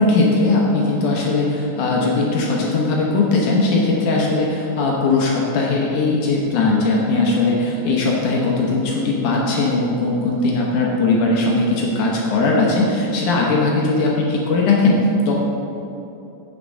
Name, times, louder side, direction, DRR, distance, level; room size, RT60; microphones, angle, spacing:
voice 1, 0.0-15.3, left 3 dB, 70° left, -2 dB, 2.2 m, -19 dB
7.2 x 5.9 x 6.4 m, 2.9 s
omnidirectional pair, 4.1 m